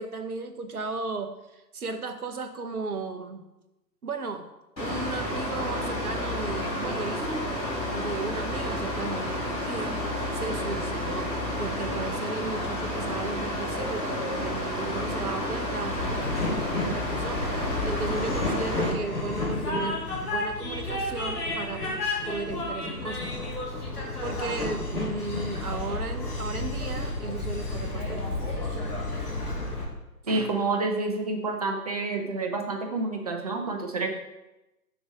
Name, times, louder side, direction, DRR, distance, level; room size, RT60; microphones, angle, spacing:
voice 1, 0.0-3.5 4.0-4.5 4.8-7.5 7.9-11.3 11.6-21.9 22.3-23.4 24.2-28.4, right 3 dB, 60° right, 8 dB, 1.0 m, -35 dB
Mechanical fan, 4.8-18.9, left 1 dB, 90° left, 2.7 m, -31 dB
Train, 15.9-29.8, left 2 dB, 65° left, 2.9 m, -31 dB
voice 2, 30.3-34.2, right 3 dB, 25° right, 3 dB, 0.6 m, -28 dB
7.1 x 5.3 x 4.8 m, 0.98 s
figure-of-eight pair, 135°, 50 cm